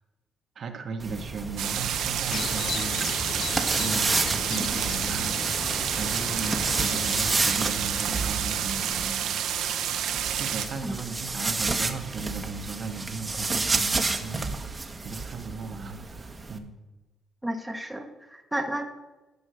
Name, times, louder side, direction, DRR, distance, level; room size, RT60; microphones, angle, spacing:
voice 1, 0.5-3.3 3.8-5.4 5.9-9.8 10.3-16.7, right 4 dB, 55° right, 5 dB, 1.1 m, -37 dB
sound 1, 1.0-9.1 10.1-16.6, right 3 dB, 25° right, 1.0 m, -31 dB
sound 2, 1.6-10.7, right 9 dB, 80° right, 0.9 m, -29 dB
sound 3, 2.3-7.5, left 7 dB, 60° left, 0.4 m, -36 dB
voice 2, 17.4-18.8, right 1 dB, 5° right, 4 dB, 1.1 m, -32 dB
11.0 x 5.5 x 6.3 m, 1.1 s
cardioid pair, 90°, 0 cm